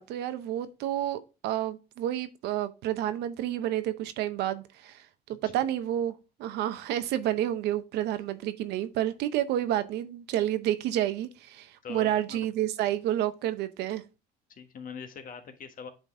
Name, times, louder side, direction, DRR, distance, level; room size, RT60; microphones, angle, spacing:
voice 1, 0.0-5.0 5.3-6.1 6.4-14.0, right 12 dB, 85° right, 0.8 m, -30 dB
voice 2, 11.8-12.5 14.5-15.9, left 6 dB, 55° left, 1.4 m, -42 dB
8.8 x 3.9 x 3.7 m
cardioid pair, 110°, 17 cm